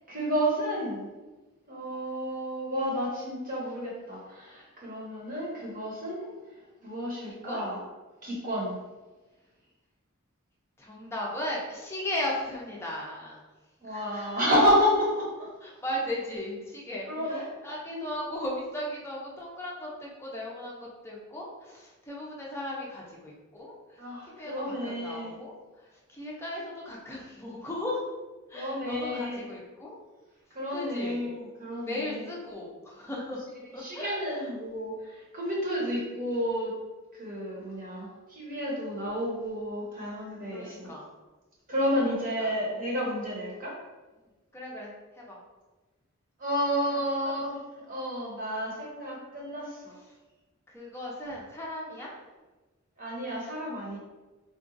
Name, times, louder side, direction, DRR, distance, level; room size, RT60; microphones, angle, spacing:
voice 1, 0.1-1.1 1.7-6.3 6.8-7.8 8.2-8.7 13.8-15.5 17.1-17.4 17.9-18.1 24.0-25.4 28.5-29.5 30.5-32.2 33.8-36.7 37.1-40.9 41.7-43.7 46.4-47.5 47.9-49.9 53.0-54.0, equal, 40° right, -4 dB, 0.9 m, -30 dB
voice 2, 7.2-7.6 10.8-13.5 13.8-14.4 15.6-28.0 28.5-30.0 30.7-31.2 31.8-33.4 33.7-34.5 40.5-41.1 42.1-42.5 44.5-45.4 49.9-50.2 50.7-52.1, left 1 dB, 10° left, -4 dB, 0.5 m, -37 dB
3.8 x 2.3 x 2.5 m, 1.2 s
head